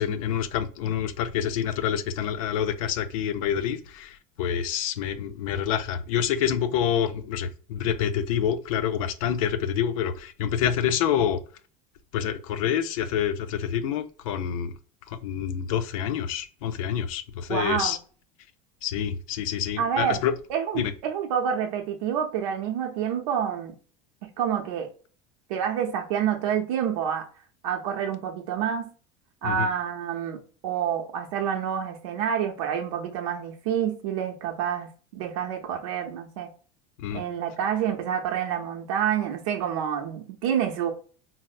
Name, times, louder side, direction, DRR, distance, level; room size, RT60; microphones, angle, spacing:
voice 1, 0.0-11.4 12.1-14.7 15.1-18.0 18.8-20.3 20.7-20.9 29.4-29.7 37.0-37.2, left 9 dB, 85° left, 0.5 m, -27 dB
voice 2, 17.5-17.9 19.8-20.2 20.5-23.8 24.2-24.9 25.5-27.2 27.6-28.9 29.4-36.5 37.1-40.9, right 8 dB, 90° right, 0.6 m, -28 dB
4.1 x 2.0 x 2.4 m
supercardioid pair, 150°, 17 cm